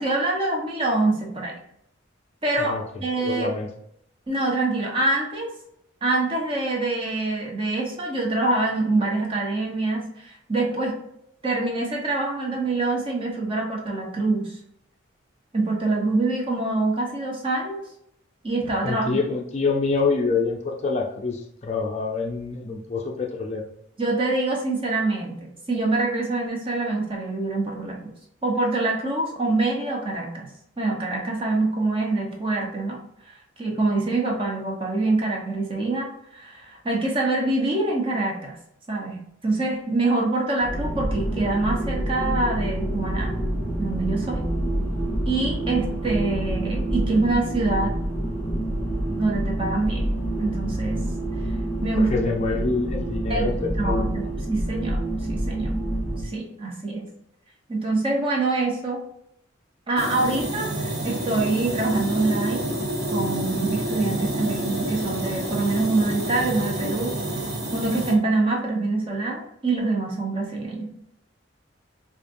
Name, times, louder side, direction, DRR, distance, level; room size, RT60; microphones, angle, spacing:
voice 1, 0.0-1.5 2.4-3.6 4.3-5.5 6.0-10.9 11.4-14.6 15.5-17.8 18.4-19.2 24.0-28.1 28.4-30.5 30.8-33.0 33.6-36.1 36.3-38.5 38.9-43.3 43.8-44.4 45.3-47.9 49.2-50.1 50.4-51.0 51.8-52.1 53.3-53.5 53.8-55.8 56.2-57.1 57.7-59.0 59.9-62.7 63.1-67.1 67.7-70.9, right 2 dB, 25° right, -1 dB, 0.8 m, -25 dB
voice 2, 2.6-3.7 18.8-23.7 52.0-54.3, left 4 dB, 35° left, 1 dB, 0.4 m, -26 dB
sound 1, 40.6-56.3, right 1 dB, 5° left, 1.0 m, -27 dB
sound 2, 60.0-68.1, right 1 dB, 50° right, 0.9 m, -28 dB
4.9 x 2.5 x 2.6 m, 0.73 s
head